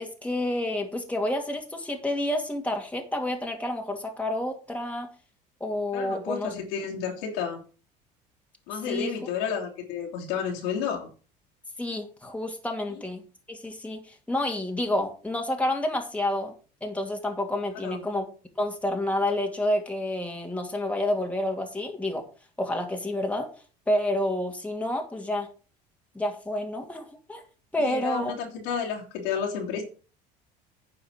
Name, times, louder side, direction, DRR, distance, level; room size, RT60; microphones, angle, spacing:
voice 1, 0.0-5.1 5.6-6.5 8.9-9.1 11.8-13.2 13.5-16.5 16.8-18.2 18.6-22.3 22.6-23.5 23.9-25.5 26.1-27.4 27.7-28.3, left 1 dB, 5° left, 2 dB, 2.4 m, -29 dB
voice 2, 5.9-7.6 8.7-11.1 12.9-13.0 17.8-18.0 27.8-29.8, left 7 dB, 75° left, -1 dB, 3.0 m, -31 dB
9.8 x 5.0 x 6.4 m, 0.36 s
hypercardioid pair, 70°, 21 cm